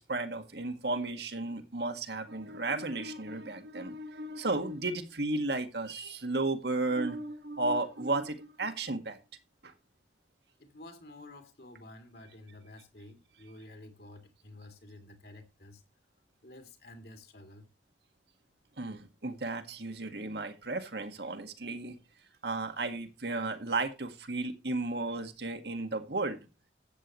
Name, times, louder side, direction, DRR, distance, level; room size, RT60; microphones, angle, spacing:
voice 1, 0.0-9.2 9.6-9.7 18.8-22.0 22.4-26.4, right 2 dB, 65° right, 1.9 m, -34 dB
voice 2, 10.6-15.8 16.4-17.6, left 1 dB, 60° left, 2.7 m, -51 dB
13.5 x 8.7 x 3.1 m
head